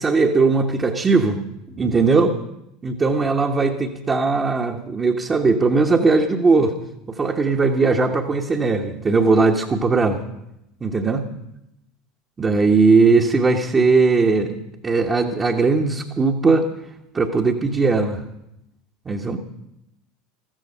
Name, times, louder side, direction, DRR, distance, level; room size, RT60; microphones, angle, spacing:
voice 1, 0.0-1.4 1.8-2.4 2.8-6.7 7.2-10.2 10.8-11.2 12.4-14.6 14.8-16.7 17.1-18.2 19.0-19.4, right 4 dB, 25° right, 0 dB, 1.3 m, -18 dB
14.5 x 14.0 x 5.6 m, 0.84 s
figure-of-eight pair, 75°, 0 cm